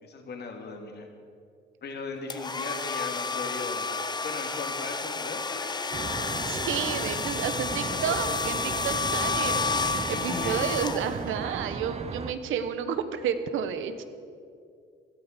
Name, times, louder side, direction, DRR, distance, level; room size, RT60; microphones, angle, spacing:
voice 1, 0.0-1.1 1.8-3.9 4.2-5.8 8.9-9.0 10.1-10.7, left 3 dB, 55° left, 3 dB, 2.7 m, -38 dB
sound 1, 2.3-11.4, left 4 dB, 20° left, 0.8 m, -31 dB
Traffic noise roadway noise, 5.9-12.3, right 4 dB, 35° right, 1.0 m, -36 dB
voice 2, 6.5-14.0, right 8 dB, 85° right, 10 dB, 1.2 m, -31 dB
16.5 x 12.5 x 6.8 m, 2.3 s
cardioid pair, 90°, 20 cm